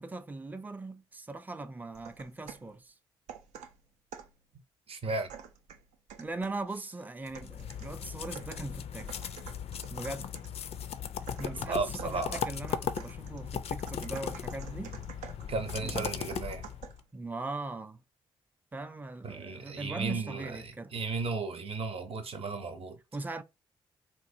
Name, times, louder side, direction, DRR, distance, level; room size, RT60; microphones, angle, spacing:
voice 1, 0.0-2.9 6.2-9.1 9.9-10.3 11.4-14.9 15.8-16.2 17.1-18.0 18.7-20.9 23.1-23.4, right 2 dB, 15° right, 0.4 m, -40 dB
sound 1, 1.9-2.7 3.3-4.4 5.3-6.7 7.3-10.6 11.3-17.1, right 8 dB, 70° right, 0.4 m, -49 dB
voice 2, 4.9-5.3 11.5-12.4 15.5-16.6 19.2-23.0, right 3 dB, 50° right, 0.8 m, -35 dB
sound 2, 7.3-17.0, left 8 dB, 55° left, 0.4 m, -38 dB
3.0 x 2.4 x 2.7 m
hypercardioid pair, 40°, 12 cm